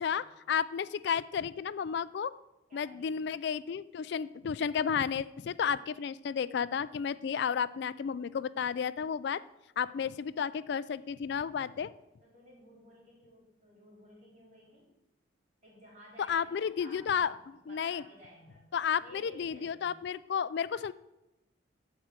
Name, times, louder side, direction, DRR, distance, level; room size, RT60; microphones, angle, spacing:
voice 1, 0.0-2.3 2.7-9.4 9.8-11.9 16.3-17.3 17.7-18.0 18.7-20.9, left 7 dB, 55° left, 16 dB, 0.3 m, -32 dB
voice 2, 2.7-3.3 9.9-10.0 12.2-14.9 15.6-18.6 19.0-20.0, equal, 40° right, -3 dB, 4.4 m, -55 dB
13.5 x 4.9 x 7.3 m, 0.94 s
head